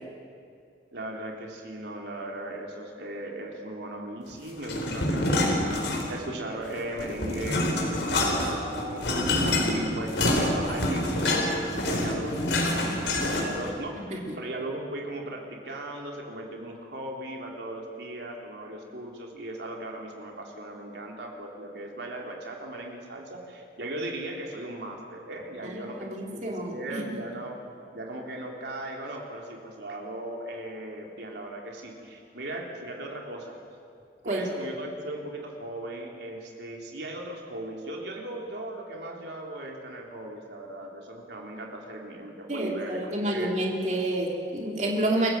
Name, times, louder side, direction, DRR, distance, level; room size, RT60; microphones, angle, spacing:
voice 1, 0.9-27.6 27.9-33.6 34.2-43.0 43.3-43.5, right 1 dB, 75° right, 0 dB, 3.6 m, -37 dB
sound 1, 4.6-6.3 6.7-13.7, left 1 dB, 85° left, 4.1 m, -27 dB
voice 2, 25.6-27.0 34.3-34.4 42.5-45.3, right 1 dB, 40° right, -1 dB, 3.2 m, -29 dB
27.5 x 15.5 x 7.8 m, 2.4 s
head